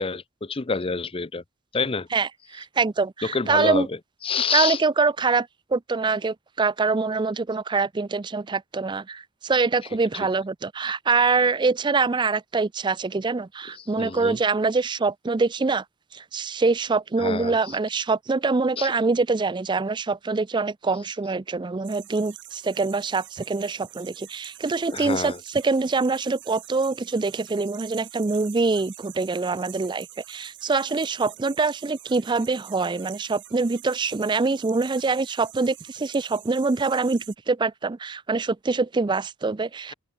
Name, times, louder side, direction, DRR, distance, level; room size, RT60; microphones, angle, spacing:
voice 1, 0.0-1.4 1.7-2.1 3.3-3.9 4.2-4.8 14.0-14.4 17.2-17.5 18.8-18.9 24.9-25.4, left 5 dB, 25° left, 0.6 m, -27 dB
voice 2, 2.1-3.9 4.5-15.8 16.1-39.9, right 4 dB, 20° right, 0.4 m, -24 dB
sound 1, 21.8-37.4, right 14 dB, 60° right, 7.6 m, -45 dB
head